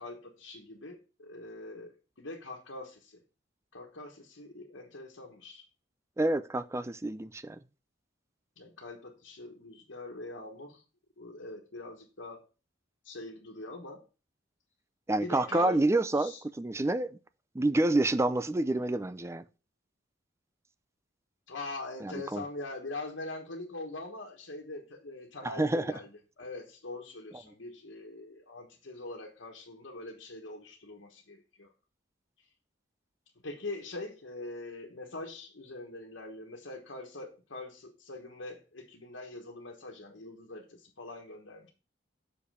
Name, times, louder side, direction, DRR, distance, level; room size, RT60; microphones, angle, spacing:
voice 1, 0.0-1.9 2.2-3.2 3.7-5.6 8.6-10.8 11.2-12.4 13.0-14.0 15.2-15.9 16.1-16.4 21.5-31.7 33.4-41.7, left 2 dB, 80° left, 1.5 m, -43 dB
voice 2, 6.2-7.6 15.1-17.1 17.5-19.4 22.0-22.4 25.4-25.8, right 2 dB, 15° right, 0.4 m, -28 dB
6.7 x 5.3 x 4.9 m
head